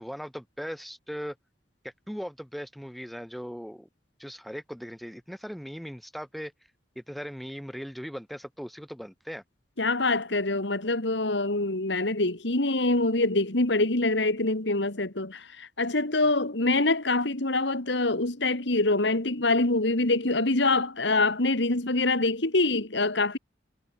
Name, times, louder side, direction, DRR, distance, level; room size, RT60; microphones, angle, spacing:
voice 1, 0.0-1.4 1.8-3.9 4.2-6.5 7.0-9.4, equal, ahead, 4.5 m, -39 dB
voice 2, 9.8-23.4, left 2 dB, 75° left, 2.4 m, -25 dB
head